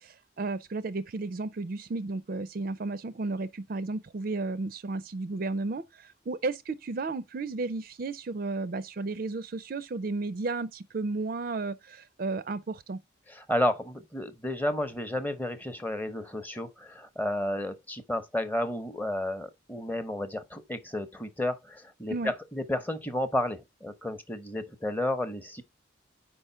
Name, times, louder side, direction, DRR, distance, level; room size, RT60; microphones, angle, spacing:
voice 1, 0.0-13.0 22.1-22.3, right 3 dB, 45° right, 0.4 m, -33 dB
voice 2, 13.3-25.6, left 1 dB, 10° left, 0.7 m, -32 dB
4.9 x 4.9 x 5.5 m
head